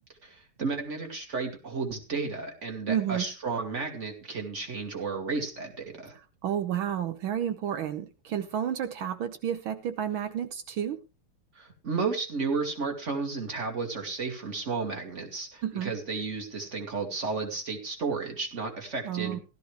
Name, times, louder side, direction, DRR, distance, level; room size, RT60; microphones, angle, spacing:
voice 1, 0.2-6.2 11.5-19.4, right 4 dB, 35° right, 3 dB, 2.7 m, -33 dB
voice 2, 2.9-3.2 6.4-11.0 15.6-15.9 19.0-19.4, right 9 dB, 75° right, 9 dB, 1.7 m, -31 dB
16.0 x 13.0 x 3.3 m, 0.31 s
omnidirectional pair, 2.3 m